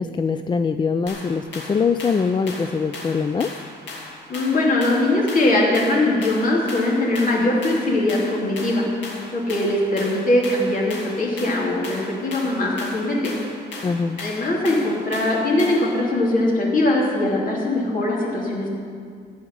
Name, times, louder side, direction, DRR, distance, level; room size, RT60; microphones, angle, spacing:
voice 1, 0.0-3.5 13.8-14.2, left 5 dB, 25° left, 9 dB, 0.3 m, -23 dB
sound 1, 1.1-16.0, left 3 dB, 85° left, 2.3 m, -37 dB
voice 2, 4.3-8.8 9.3-13.3 14.2-18.7, left 1 dB, 50° left, -3 dB, 2.9 m, -21 dB
15.0 x 5.1 x 9.4 m, 2.2 s
cardioid pair, 115°, 18 cm